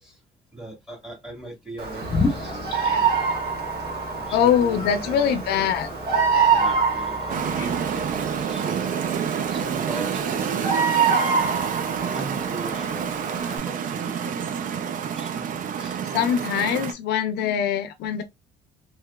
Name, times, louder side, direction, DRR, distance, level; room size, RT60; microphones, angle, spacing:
voice 1, 0.5-3.2 3.8-5.7 6.5-8.9 9.5-10.6 12.0-14.9 15.2-16.0, right 1 dB, 5° right, 1.7 m, -40 dB
Bird vocalization bird call bird song, 1.8-13.6, right 5 dB, 70° right, 1.3 m, -26 dB
sound 1, 2.0-8.4, left 3 dB, 25° left, 0.9 m, -32 dB
voice 2, 4.3-5.9 16.1-18.2, left 8 dB, 75° left, 0.5 m, -22 dB
sound 2, 7.3-16.9, right 8 dB, 50° right, 0.5 m, -28 dB
3.0 x 2.8 x 2.2 m
cardioid pair, 110°, 17 cm